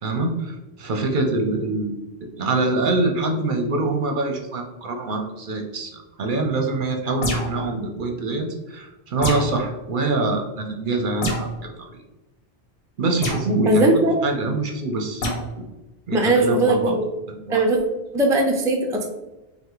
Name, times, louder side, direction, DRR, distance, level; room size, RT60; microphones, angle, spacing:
voice 1, 0.0-1.9 2.2-5.9 6.2-11.9 13.0-15.3 16.1-17.0 17.4-17.6, right 3 dB, 55° right, 4 dB, 0.7 m, -25 dB
sound 1, 7.2-7.7 9.2-9.6 11.2-11.5 13.2-13.5 15.2-15.4, left 1 dB, 70° left, 1.4 m, -25 dB
voice 2, 13.6-14.2 16.1-17.1 17.5-17.8 18.1-19.1, right 1 dB, 5° right, 1 dB, 0.4 m, -19 dB
5.5 x 2.4 x 3.8 m, 1.0 s
omnidirectional pair, 1.1 m